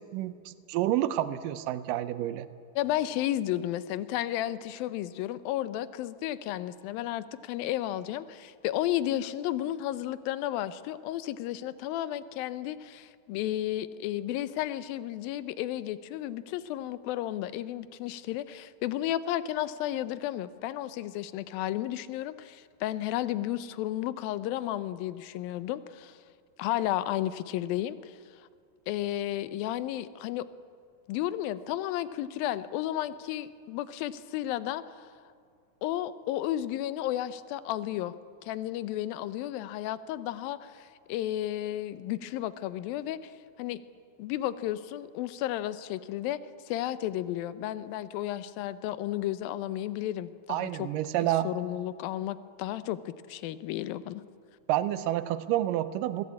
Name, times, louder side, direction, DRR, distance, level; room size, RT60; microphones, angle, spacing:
voice 1, 0.0-2.5 50.5-51.5 54.7-56.2, right 13 dB, 80° right, 13 dB, 2.3 m, -29 dB
voice 2, 2.8-26.2 26.6-28.2 28.9-30.5 31.1-34.8 35.8-38.1 38.4-43.3 43.6-43.8 44.2-46.4 46.7-50.9 51.4-54.2, left 13 dB, 85° left, 14 dB, 2.5 m, -33 dB
21.5 x 16.0 x 8.6 m, 2.2 s
omnidirectional pair, 4.1 m